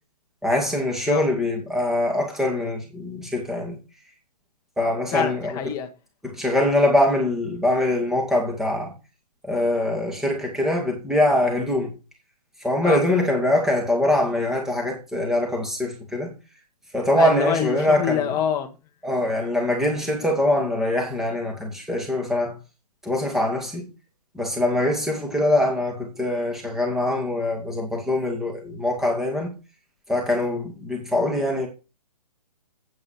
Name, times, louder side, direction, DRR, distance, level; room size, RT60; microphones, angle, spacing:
voice 1, 0.4-3.8 4.8-5.5 6.2-8.9 9.4-11.9 12.6-16.3 16.9-18.2 19.0-22.6 23.0-23.8 24.3-29.5 30.1-31.7, left 1 dB, ahead, 2.2 m, -23 dB
voice 2, 5.1-5.9 12.8-13.0 17.1-18.8, left 8 dB, 15° left, 1.3 m, -25 dB
8.7 x 8.6 x 6.0 m
hypercardioid pair, 155°, 21 cm